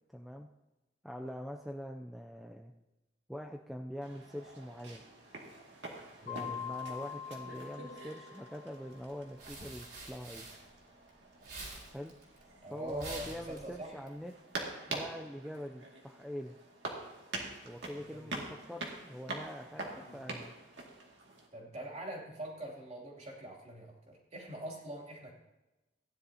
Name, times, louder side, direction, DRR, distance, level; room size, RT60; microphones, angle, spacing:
voice 1, 0.1-0.5 1.0-2.7 3.3-5.0 6.2-10.5 11.9-12.1 12.7-14.3 14.9-16.6 17.6-20.5, equal, ahead, 2 dB, 0.4 m, -44 dB
sound 1, 4.0-21.5, right 2 dB, 80° right, 2.2 m, -46 dB
Mallet percussion, 6.3-8.9, left 9 dB, 45° left, 2.3 m, -43 dB
sound 2, 9.0-11.1 11.4-14.1, right 2 dB, 60° right, 3.8 m, -47 dB
voice 2, 12.6-14.0 18.0-18.5 19.7-20.3 21.5-25.3, right 1 dB, 35° right, -2 dB, 2.8 m, -44 dB
16.5 x 10.5 x 2.8 m, 1.0 s
head